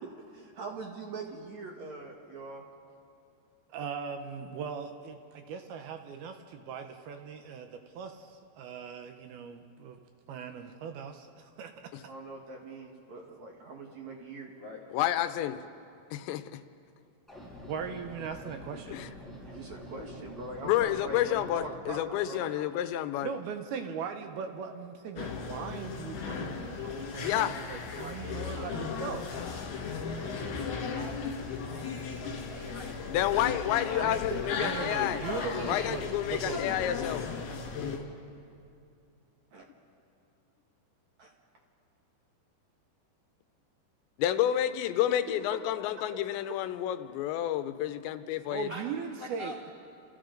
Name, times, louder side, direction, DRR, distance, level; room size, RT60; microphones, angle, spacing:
voice 1, 0.0-2.7 12.0-14.5 19.4-22.7 27.9-28.8 33.3-33.4 33.8-34.1 39.5-39.7 41.2-41.3 45.5-45.6 46.4-46.6, right 3 dB, 55° right, 0 dB, 2.2 m, -43 dB
voice 2, 3.7-10.0 10.3-11.9 17.7-19.0 23.2-29.3 33.9-34.2 34.6-36.0 36.3-36.8 48.5-49.7, right 6 dB, 75° right, 6 dB, 2.5 m, -39 dB
voice 3, 14.9-15.6 16.1-16.6 18.9-19.1 20.7-23.3 27.2-27.5 33.1-35.2 35.7-37.2 44.2-48.7, left 12 dB, 85° left, 11 dB, 3.0 m, -29 dB
sound 1, 17.3-21.7, equal, ahead, 6.6 m, -46 dB
sound 2, 25.2-38.0, left 5 dB, 65° left, 4.4 m, -36 dB
voice 4, 30.2-33.4 48.7-48.8 49.2-49.7, left 1 dB, 50° left, -3 dB, 0.6 m, -46 dB
30.0 x 28.5 x 3.9 m, 2.5 s
omnidirectional pair, 5.1 m